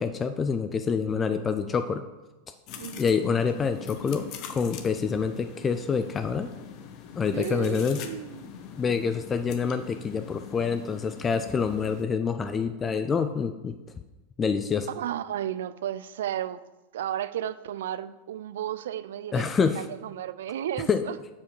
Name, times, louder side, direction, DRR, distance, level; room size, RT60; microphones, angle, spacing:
voice 1, 0.0-2.0 3.0-6.5 7.2-8.0 8.8-13.7 14.4-14.9 19.3-19.8 20.9-21.0, left 6 dB, 20° left, 9 dB, 0.4 m, -27 dB
sound 1, 2.7-12.0, left 8 dB, 45° left, 0.8 m, -43 dB
voice 2, 2.8-3.2 7.3-8.6 14.9-16.6 16.9-21.2, right 11 dB, 60° right, 14 dB, 0.4 m, -33 dB
7.1 x 5.0 x 6.4 m, 1.1 s
figure-of-eight pair, 85°, 0 cm